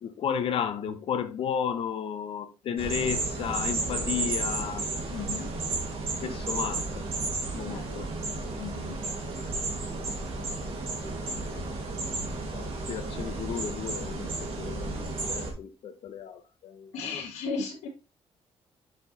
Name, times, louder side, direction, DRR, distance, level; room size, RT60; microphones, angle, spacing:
voice 1, 0.0-4.9 6.2-7.1 7.5-8.1 12.0-12.2 12.5-16.9, left 8 dB, 55° left, 1.0 m, -33 dB
sound 1, 2.8-15.5, right 3 dB, 55° right, 2.1 m, -33 dB
voice 2, 5.1-5.5 7.6-8.0 8.6-9.0 16.9-17.9, left 4 dB, 85° left, 1.5 m, -35 dB
6.2 x 4.8 x 4.0 m
cardioid pair, 155°, 11 cm